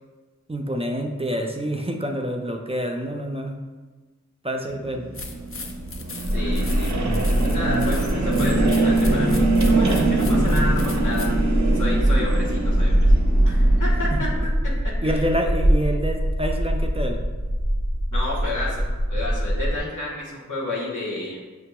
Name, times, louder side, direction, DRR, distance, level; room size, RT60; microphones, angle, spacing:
voice 1, 0.5-3.6 4.4-5.1 14.1-14.2 15.0-17.2, equal, 20° right, 2 dB, 0.4 m, -27 dB
sound 1, 4.7-14.4, right 2 dB, 70° right, 0.6 m, -24 dB
sound 2, 5.1-11.4, left 3 dB, 45° left, 0.5 m, -38 dB
sound 3, 6.2-19.8, equal, 65° left, 0.9 m, -22 dB
voice 2, 6.3-11.3 11.7-13.2 13.4-15.3 18.1-21.4, left 2 dB, 85° left, -6 dB, 1.1 m, -31 dB
6.0 x 2.9 x 2.2 m, 1.3 s
wide cardioid pair, 40°, 30 cm